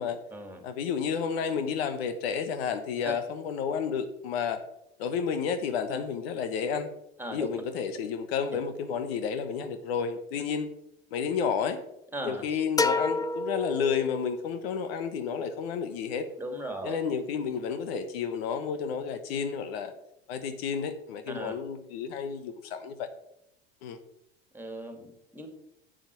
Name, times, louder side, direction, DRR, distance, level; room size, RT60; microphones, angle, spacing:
voice 1, 0.6-4.6 5.0-6.9 7.3-10.7 11.1-11.8 12.2-16.3 16.8-19.9 20.3-23.1 23.8-24.0, left 6 dB, 75° left, 10 dB, 1.1 m, -31 dB
voice 2, 12.1-12.6 16.4-17.0 21.3-21.5 24.5-25.5, right 1 dB, 5° right, 5 dB, 2.7 m, -37 dB
sound 1, 12.8-14.5, left 3 dB, 10° left, 0.5 m, -29 dB
7.6 x 7.3 x 7.0 m, 0.79 s
hypercardioid pair, 80°, 31 cm